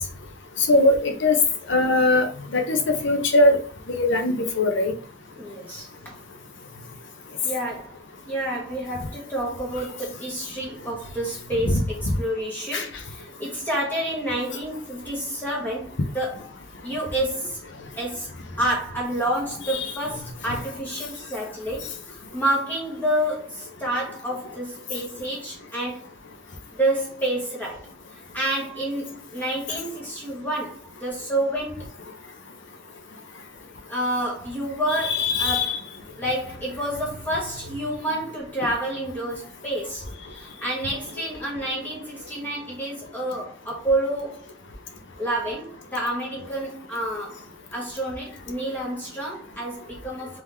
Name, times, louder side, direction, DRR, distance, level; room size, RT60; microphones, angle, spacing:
voice 1, 0.7-1.3 1.7-2.3 2.5-3.6 3.9-4.9 11.6-11.7 12.7-12.8 35.1-35.7, left 2 dB, 60° left, 0.8 m, -20 dB
voice 2, 5.3-6.2 7.4-16.5 16.8-17.6 18.0-18.3 18.6-26.1 26.7-31.9 33.9-35.8 36.2-44.5 45.2-47.4 47.7-50.4, right 1 dB, 10° left, 1.2 m, -29 dB
3.6 x 3.1 x 3.4 m
head